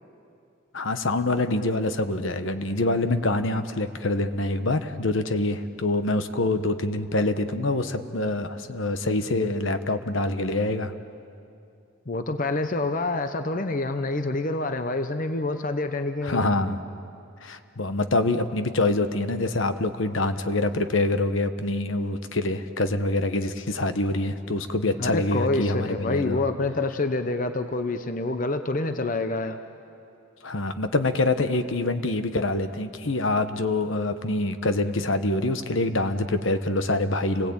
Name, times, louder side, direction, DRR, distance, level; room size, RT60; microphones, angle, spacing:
voice 1, 0.7-10.9 16.2-16.8 17.4-26.4 30.4-37.5, left 2 dB, 70° left, 9 dB, 1.1 m, -25 dB
voice 2, 12.1-16.4 25.0-29.6, left 2 dB, 40° left, 8 dB, 0.9 m, -27 dB
29.0 x 19.5 x 8.8 m, 2.6 s
head